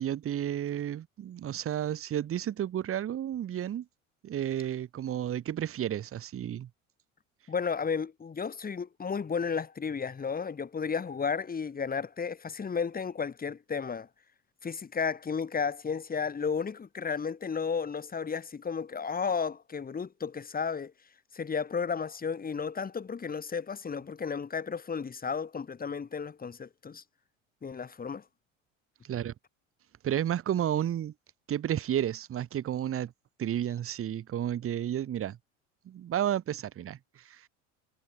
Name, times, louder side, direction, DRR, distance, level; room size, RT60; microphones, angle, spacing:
voice 1, 0.0-3.8 4.2-6.7 29.0-29.3 30.0-31.1 31.5-33.1 33.4-35.4 35.8-37.5, right 10 dB, 35° right, 1.3 m, -32 dB
voice 2, 7.5-14.1 14.6-20.9 21.3-27.0 27.6-28.2, left 6 dB, 25° left, 2.2 m, -33 dB
hypercardioid pair, 70°, 38 cm